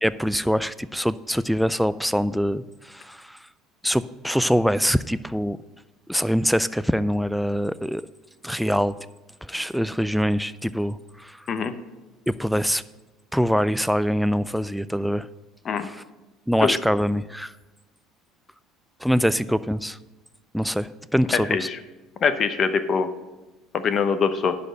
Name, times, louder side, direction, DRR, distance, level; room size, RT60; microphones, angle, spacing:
voice 1, 0.0-3.4 3.8-5.6 6.1-8.0 8.4-8.9 9.4-11.4 12.3-12.8 13.3-15.3 15.8-16.0 16.5-17.5 19.0-20.0 20.5-21.7, equal, ahead, 15 dB, 0.3 m, -24 dB
voice 2, 22.2-23.1 23.7-24.6, left 6 dB, 45° left, 10 dB, 0.8 m, -23 dB
11.0 x 4.3 x 7.7 m, 1.1 s
supercardioid pair, 100°, 0 cm